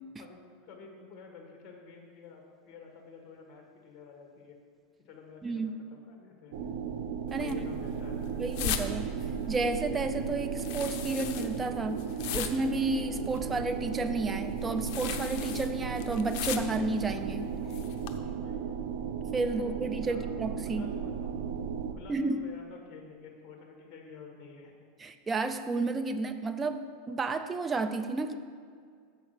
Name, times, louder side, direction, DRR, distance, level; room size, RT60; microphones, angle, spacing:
voice 1, 0.2-4.6 5.0-6.6 7.4-8.5 18.2-18.8 19.5-20.3 20.6-21.5 21.9-24.7, left 5 dB, 40° left, 2 dB, 1.5 m, -50 dB
voice 2, 5.4-5.7 7.3-7.6 8.4-9.1 9.5-17.5 19.3-20.8 22.1-22.4 25.0-28.3, right 3 dB, 20° right, 8 dB, 0.4 m, -32 dB
sound 1, 6.5-21.9, right 7 dB, 65° right, 0.8 m, -35 dB
sound 2, 7.3-18.2, left 9 dB, 60° left, 0.6 m, -40 dB
7.6 x 5.8 x 6.4 m, 2.1 s
supercardioid pair, 130°, 0 cm